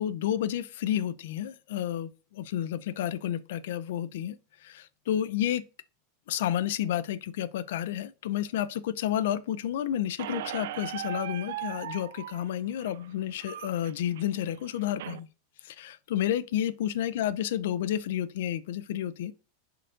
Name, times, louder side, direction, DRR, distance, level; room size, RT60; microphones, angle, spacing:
voice 1, 0.0-4.4 4.6-5.6 6.3-15.3 15.6-19.3, left 11 dB, 65° left, 0.5 m, -31 dB
Squeak, 10.2-15.2, right 13 dB, 70° right, 0.4 m, -39 dB
11.0 x 3.9 x 2.5 m
supercardioid pair, 170°, 0 cm